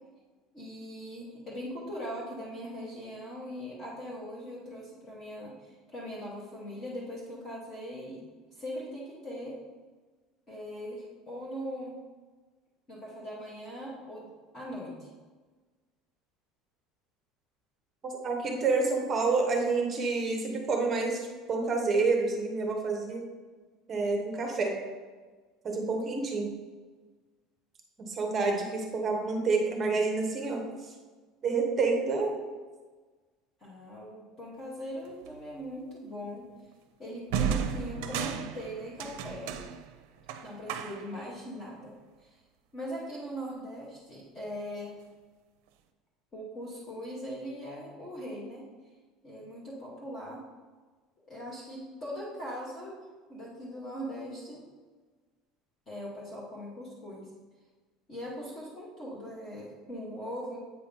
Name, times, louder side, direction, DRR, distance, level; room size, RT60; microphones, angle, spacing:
voice 1, 0.5-8.2 8.5-9.6 10.5-11.9 12.9-15.1 33.6-36.5 37.0-39.6 40.4-41.9 42.2-42.4 42.7-45.0 46.3-48.7 49.2-50.4 51.2-53.0 53.3-54.6 55.9-57.3 58.1-60.6, equal, 25° left, -6 dB, 1.1 m, -40 dB
voice 2, 18.0-23.2 23.9-24.7 25.6-26.5 28.1-30.9 31.4-32.5, right 3 dB, 20° right, 2 dB, 0.9 m, -28 dB
sound 1, 35.2-35.5 37.3-41.2, right 8 dB, 70° right, 0.5 m, -34 dB
8.1 x 2.8 x 5.2 m, 1.4 s
cardioid pair, 180°, 0 cm